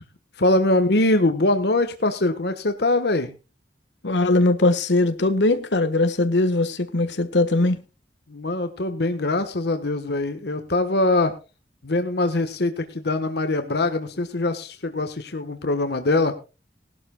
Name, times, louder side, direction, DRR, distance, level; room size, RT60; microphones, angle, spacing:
voice 1, 0.4-3.3 8.3-11.3 11.8-16.3, left 2 dB, 65° left, 1.3 m, -22 dB
voice 2, 4.0-7.8, left 2 dB, 85° left, 1.5 m, -20 dB
19.5 x 12.0 x 2.3 m
head